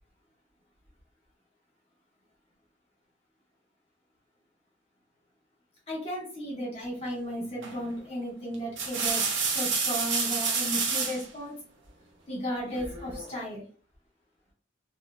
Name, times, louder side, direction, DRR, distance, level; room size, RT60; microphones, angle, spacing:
voice 1, 5.9-11.5 12.3-13.6, equal, 30° left, -5 dB, 1.2 m, -35 dB
sound 1, 7.6-7.9 8.5-11.2 12.7-13.4, right 5 dB, 85° right, 0.7 m, -29 dB
3.0 x 2.7 x 2.3 m, 0.41 s
head